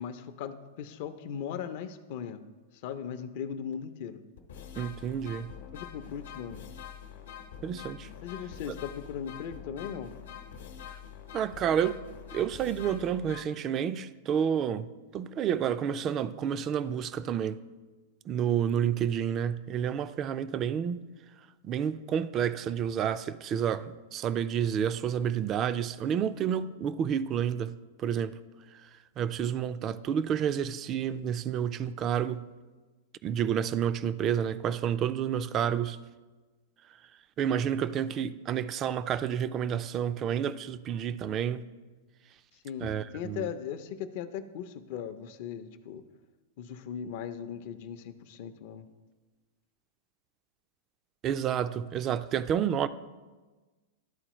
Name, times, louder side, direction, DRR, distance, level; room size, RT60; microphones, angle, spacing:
voice 1, 0.0-2.4 2.8-4.2 5.7-6.7 8.2-10.1 42.5-46.0 46.6-48.9, left 8 dB, 55° left, 0.5 m, -38 dB
sound 1, 3.7-3.8 4.4-13.4, left 8 dB, 80° left, 0.9 m, -45 dB
voice 2, 4.8-5.5 7.6-8.1 11.3-12.0 12.3-14.9 15.1-17.6 18.3-21.1 21.6-27.7 28.0-28.4 29.2-32.4 33.2-36.0 37.4-41.7 42.8-43.5 51.2-52.9, right 8 dB, 30° right, 0.3 m, -30 dB
12.0 x 4.1 x 3.0 m
hypercardioid pair, 135°, 0 cm